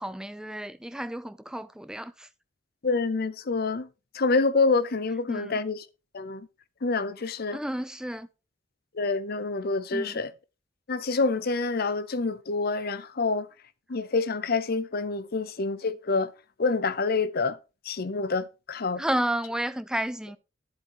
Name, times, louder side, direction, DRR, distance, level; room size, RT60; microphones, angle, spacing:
voice 1, 0.0-2.3 5.3-5.6 7.5-8.3 9.9-10.2 19.0-20.4, right 1 dB, 5° right, 0.5 m, -31 dB
voice 2, 2.8-3.9 4.1-5.8 6.1-6.5 6.8-7.6 8.9-10.3 10.9-13.5 13.9-16.3 16.6-17.6 17.9-19.0, left 3 dB, 50° left, 0.6 m, -27 dB
10.5 x 8.1 x 3.0 m
head